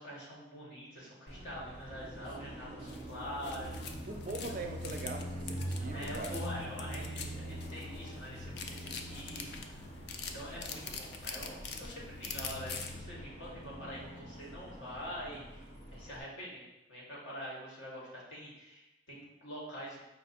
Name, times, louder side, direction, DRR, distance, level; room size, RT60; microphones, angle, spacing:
voice 1, 0.0-3.7 4.5-4.8 5.9-9.8 10.2-16.6 16.9-20.0, equal, 90° left, -5 dB, 1.5 m, -45 dB
Car passing by, 1.3-16.2, equal, 30° left, 0.8 m, -44 dB
voice 2, 2.4-3.1 4.1-6.4, right 3 dB, 45° right, 4 dB, 0.4 m, -42 dB
sound 1, 2.9-13.0, left 5 dB, 55° left, 0.4 m, -45 dB
5.3 x 2.1 x 4.2 m, 0.94 s
head